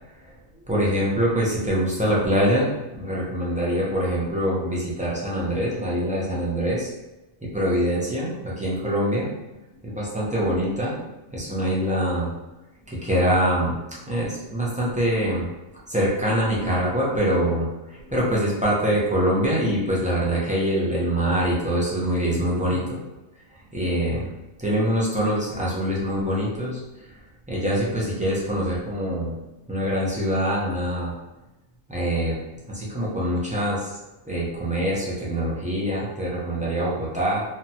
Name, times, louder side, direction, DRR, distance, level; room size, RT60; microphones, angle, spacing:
voice 1, 0.1-6.9 7.4-9.3 9.8-11.0 11.3-12.3 12.9-15.5 15.9-23.0 23.5-24.3 24.6-27.2 27.5-29.3 29.7-31.1 31.9-32.4 32.7-34.0 34.2-37.4, equal, 10° right, -7 dB, 0.4 m, -24 dB
2.9 x 2.3 x 2.7 m, 1.0 s
omnidirectional pair, 1.2 m